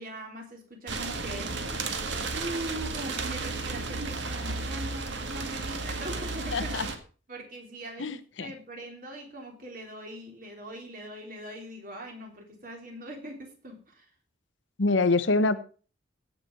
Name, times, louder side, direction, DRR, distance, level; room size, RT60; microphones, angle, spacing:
voice 1, 0.0-1.7 2.3-6.7 7.3-14.1, right 1 dB, 45° right, 2 dB, 3.5 m, -41 dB
sound 1, 0.9-7.0, right 3 dB, 65° right, 1.8 m, -33 dB
voice 2, 6.5-6.9 8.0-8.5 14.8-15.6, left 3 dB, 70° left, 12 dB, 1.0 m, -25 dB
17.0 x 6.2 x 5.3 m, 0.38 s
head